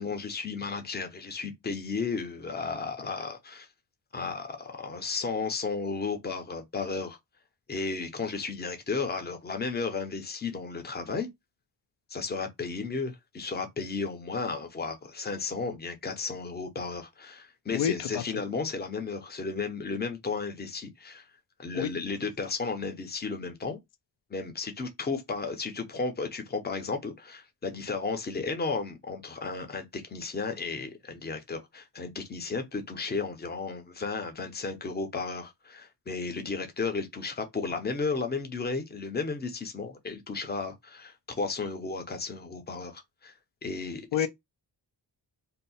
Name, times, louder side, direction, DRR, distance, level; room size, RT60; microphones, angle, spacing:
voice 1, 0.0-3.7 4.1-7.2 7.7-11.3 12.1-21.2 21.6-23.8 24.3-43.3 43.6-44.3, left 4 dB, 25° left, 0.6 m, -34 dB
voice 2, 17.7-18.2 21.7-21.9 44.1-44.3, left 9 dB, 90° left, 0.5 m, -28 dB
2.7 x 2.1 x 4.0 m
wide cardioid pair, 165°, 43 cm